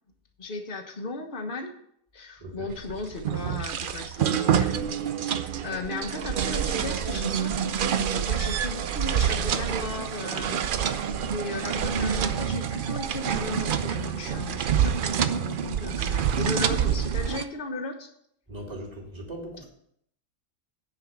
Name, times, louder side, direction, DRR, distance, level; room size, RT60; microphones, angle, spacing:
voice 1, 0.4-1.7 2.1-4.9 5.2-18.1, left 3 dB, 40° left, 5 dB, 1.3 m, -36 dB
voice 2, 2.4-2.7 18.5-19.6, right 1 dB, 20° right, -5 dB, 2.9 m, -39 dB
sound 1, 2.7-17.4, right 8 dB, 70° right, 0.4 m, -27 dB
9.5 x 5.0 x 7.4 m, 0.70 s
omnidirectional pair, 1.5 m